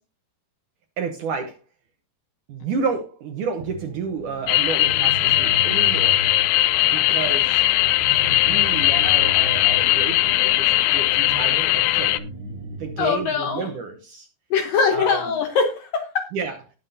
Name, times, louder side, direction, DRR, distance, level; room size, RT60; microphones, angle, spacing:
voice 1, 1.0-1.6 2.5-6.2 6.8-7.6 8.2-12.2 12.7-14.3 14.9-15.2 16.3-16.6, right 5 dB, 80° right, 5 dB, 1.8 m, -30 dB
sound 1, 3.6-13.3, right 2 dB, 55° right, 4.7 m, -37 dB
sound 2, 4.5-12.2, left 17 dB, 90° left, 3.0 m, -19 dB
voice 2, 13.0-13.7 14.5-16.3, left 5 dB, 75° left, 6 dB, 2.1 m, -22 dB
19.0 x 7.3 x 2.7 m, 0.30 s
omnidirectional pair, 5.0 m